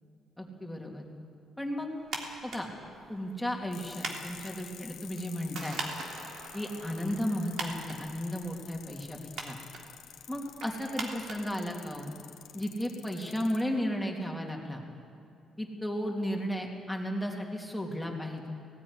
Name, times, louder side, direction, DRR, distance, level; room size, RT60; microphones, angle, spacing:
voice 1, 0.4-1.0 1.6-1.9 2.4-2.7 3.1-5.8 6.5-9.2 9.4-9.6 10.3-12.1 12.5-14.8 15.6-18.5, equal, 5° left, 0 dB, 3.0 m, -34 dB
sound 1, 1.9-11.1, right 3 dB, 85° right, 3.6 m, -52 dB
sound 2, 2.0-12.2, right 3 dB, 65° right, 3.2 m, -43 dB
sound 3, 3.7-13.6, left 11 dB, 85° left, 1.2 m, -50 dB
18.0 x 14.5 x 9.9 m, 2.5 s
cardioid pair, 90°, 0 cm